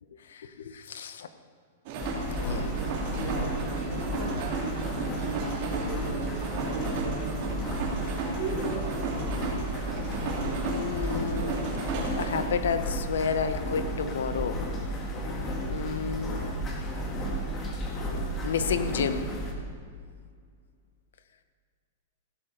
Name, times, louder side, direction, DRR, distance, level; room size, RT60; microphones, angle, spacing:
voice 1, 0.3-1.3 2.4-2.7 10.6-11.6 12.1-14.7 15.7-16.4 18.4-19.3, left 6 dB, 85° left, 10 dB, 1.0 m, -31 dB
sound 1, 1.9-12.4, right 3 dB, 40° right, 2.3 m, -34 dB
sound 2, 2.0-19.5, equal, 20° left, 1.6 m, -33 dB
voice 2, 3.2-7.6 8.4-9.5, right 4 dB, 60° right, -2 dB, 3.1 m, -38 dB
15.5 x 12.5 x 3.9 m, 2.1 s
supercardioid pair, 165°, 0 cm